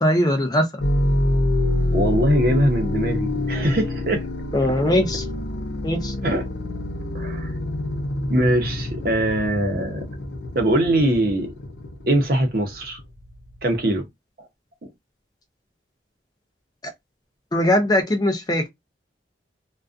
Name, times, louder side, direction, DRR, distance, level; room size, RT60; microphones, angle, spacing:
voice 1, 0.0-0.7 4.5-5.2 5.8-6.1 17.5-18.7, left 1 dB, 20° left, 0.4 m, -20 dB
sound 1, 0.8-13.9, left 1 dB, 80° left, 0.5 m, -26 dB
voice 2, 1.9-4.3 4.6-4.9 6.2-6.5 7.1-7.5 8.3-10.1 10.5-11.5 12.1-13.0 13.6-14.0 14.8-14.9, right 1 dB, 50° right, 0.7 m, -22 dB
2.5 x 2.2 x 2.4 m
head